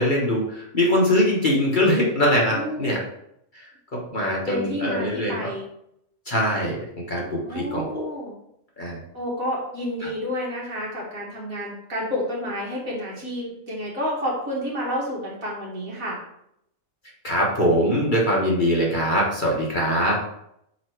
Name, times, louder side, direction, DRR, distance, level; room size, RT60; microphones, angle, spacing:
voice 1, 0.0-3.0 3.5-3.6 3.9-5.5 6.3-8.0 8.8-9.0 17.2-20.2, left 1 dB, 35° left, -3 dB, 1.3 m, -22 dB
voice 2, 2.5-3.0 4.5-5.7 7.5-8.3 9.1-16.2, equal, 65° right, -5 dB, 2.6 m, -30 dB
5.7 x 4.8 x 4.6 m, 0.76 s
omnidirectional pair, 1.6 m